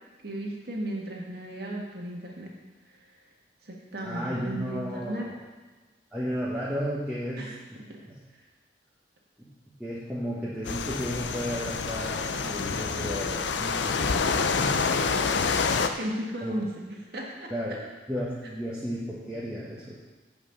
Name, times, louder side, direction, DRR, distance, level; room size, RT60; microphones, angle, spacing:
voice 1, 0.2-2.5 3.6-5.3 7.4-7.5 7.9-8.0 16.0-17.5, right 1 dB, 55° right, -2 dB, 1.7 m, -35 dB
voice 2, 4.0-5.3 6.1-7.8 8.1-8.2 9.4-9.5 9.8-14.8 16.4-16.5 17.5-17.8 18.1-19.9, equal, 5° right, -9 dB, 1.3 m, -33 dB
sound 1, 10.6-15.9, left 5 dB, 75° left, 0.6 m, -27 dB
7.9 x 5.7 x 6.9 m, 1.3 s
head